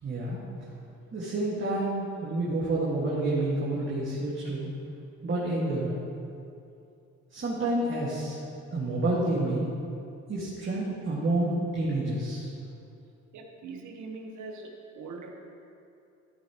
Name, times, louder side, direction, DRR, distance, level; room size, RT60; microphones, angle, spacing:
voice 1, 0.0-0.4 1.1-4.7 5.2-5.9 7.3-8.4 8.7-9.7 10.3-12.5, right 2 dB, 40° right, -7 dB, 2.0 m, -29 dB
voice 2, 13.3-15.3, right 3 dB, 75° right, 2 dB, 1.3 m, -42 dB
13.5 x 8.4 x 3.1 m, 2.6 s
cardioid pair, 90°, 30 cm